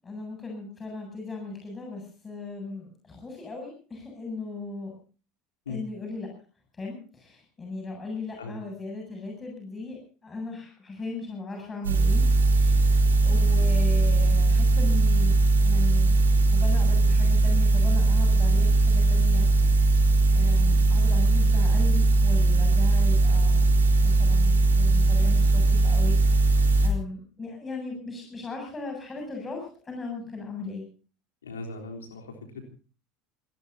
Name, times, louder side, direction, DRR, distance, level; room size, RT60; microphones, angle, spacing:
voice 1, 0.0-4.9 5.7-6.3 6.7-12.2 12.5-12.8 13.2-16.1 16.5-20.0 20.3-26.5 26.8-30.8, left 3 dB, 25° left, 1 dB, 8.0 m, -37 dB
sound 1, 11.8-26.9, right 2 dB, 80° right, 4.0 m, -20 dB
voice 2, 31.4-32.6, left 3 dB, 80° left, 2 dB, 3.6 m, -38 dB
27.5 x 19.0 x 2.8 m, 0.39 s
figure-of-eight pair, 70°, 0 cm